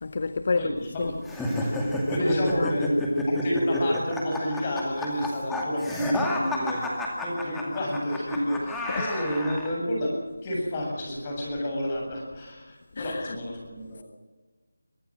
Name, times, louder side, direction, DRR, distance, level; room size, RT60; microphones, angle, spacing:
voice 1, 0.0-0.7 1.0-1.1 2.2-2.9 13.0-13.4, left 4 dB, 40° left, 0.9 m, -29 dB
voice 2, 0.6-1.1 2.1-3.0 3.3-6.8 7.2-10.1 10.4-14.0, equal, 20° left, 7.9 m, -30 dB
sound 1, 1.2-9.7, left 1 dB, 5° left, 2.3 m, -30 dB
23.5 x 18.0 x 7.6 m
figure-of-eight pair, 170°, 0 cm